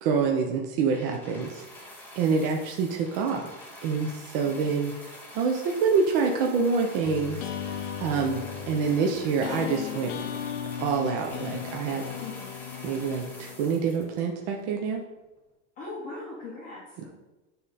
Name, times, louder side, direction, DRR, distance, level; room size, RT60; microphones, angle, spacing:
voice 1, 0.0-1.6 2.2-3.5 3.8-4.9 5.3-8.4 8.7-10.1 10.8-12.0 12.8-15.0, right 5 dB, 50° right, 2 dB, 0.7 m, -26 dB
sound 1, 0.9-14.6 15.4-15.5, left 1 dB, 5° left, 0.6 m, -46 dB
voice 2, 4.4-4.7 12.2-12.5 15.8-17.0, left 3 dB, 20° left, -7 dB, 1.1 m, -40 dB
sound 2, 7.0-13.8, left 9 dB, 65° left, 0.6 m, -37 dB
7.5 x 3.8 x 4.1 m, 1.1 s
supercardioid pair, 175°, 37 cm